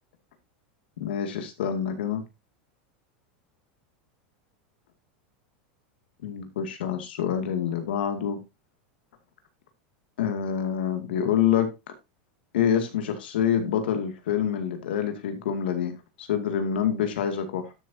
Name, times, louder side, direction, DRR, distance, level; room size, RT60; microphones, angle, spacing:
voice 1, 1.0-2.2 6.2-8.4 10.2-11.7 12.5-17.7, left 8 dB, 85° left, 2.3 m, -26 dB
12.5 x 7.0 x 2.8 m
supercardioid pair, 125°, 5 cm